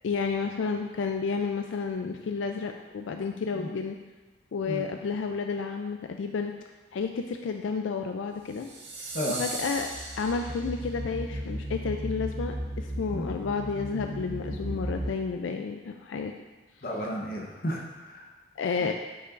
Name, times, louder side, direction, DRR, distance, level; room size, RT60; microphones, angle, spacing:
voice 1, 0.0-4.0 4.5-6.5 6.9-8.7 9.4-9.9 10.2-16.3 18.6-18.9, left 5 dB, 85° left, 4 dB, 0.4 m, -31 dB
sound 1, 8.5-11.0, right 3 dB, 80° right, 1.4 m, -38 dB
sound 2, 9.6-15.1, equal, 45° right, 1.6 m, -35 dB
voice 2, 16.8-18.3, equal, 50° left, 0 dB, 1.0 m, -33 dB
8.4 x 5.6 x 2.5 m, 1.2 s
head